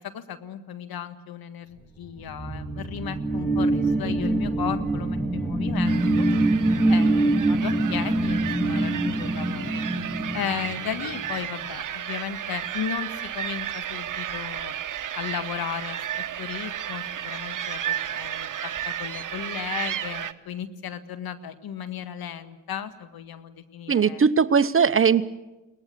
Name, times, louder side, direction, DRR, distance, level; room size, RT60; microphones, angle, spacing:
voice 1, 0.0-6.3 6.9-9.8 10.3-14.7 15.1-24.2, left 9 dB, 65° left, 11 dB, 1.7 m, -35 dB
sound 1, 2.0-11.3, right 2 dB, 5° left, 3.5 m, -24 dB
sound 2, 5.8-20.3, right 10 dB, 50° right, 1.2 m, -33 dB
voice 2, 23.9-25.2, right 6 dB, 35° right, 15 dB, 0.9 m, -19 dB
22.0 x 19.5 x 8.4 m, 1.1 s
hypercardioid pair, 45°, 40 cm